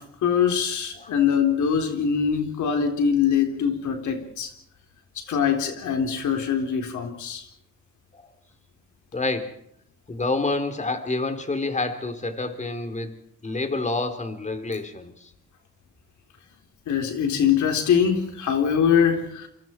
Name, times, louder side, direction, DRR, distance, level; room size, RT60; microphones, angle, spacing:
voice 1, 0.0-4.5 5.2-7.4 16.9-19.5, left 7 dB, 75° left, 3.8 m, -23 dB
voice 2, 9.1-9.6 10.1-15.1, left 3 dB, 25° left, 3.6 m, -28 dB
28.0 x 25.0 x 4.5 m
cardioid pair, 90°, 30 cm